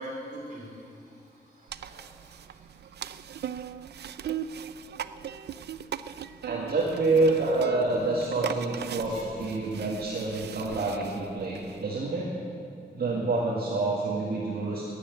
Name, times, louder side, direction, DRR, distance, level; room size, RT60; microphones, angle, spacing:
voice 1, 0.0-3.1 3.5-3.7 9.0-9.2, equal, 50° right, -3 dB, 3.9 m, -44 dB
sound 1, 1.7-11.8, right 9 dB, 90° right, 0.5 m, -39 dB
voice 2, 6.4-12.3 12.9-14.9, right 3 dB, 70° right, -4 dB, 1.9 m, -27 dB
13.0 x 10.0 x 9.2 m, 2.5 s
wide cardioid pair, 180°, 17 cm